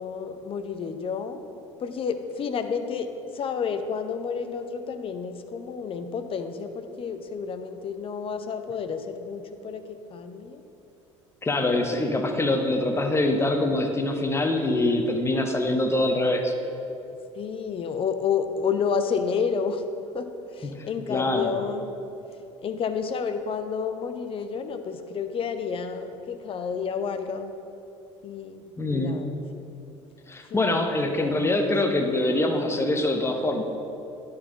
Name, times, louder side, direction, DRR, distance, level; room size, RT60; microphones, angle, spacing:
voice 1, 0.0-1.4 1.8-3.1 3.3-9.8 10.1-10.6 17.4-19.8 20.1-21.9 22.6-27.5 28.2-29.7 30.5-30.7 31.0-31.7, left 6 dB, 35° left, 8 dB, 0.6 m, -30 dB
voice 2, 11.4-16.5 20.7-21.5 28.8-29.2 30.3-33.6, left 2 dB, 15° left, 4 dB, 1.0 m, -24 dB
11.0 x 4.1 x 3.9 m, 2.7 s
figure-of-eight pair, 60°, 16 cm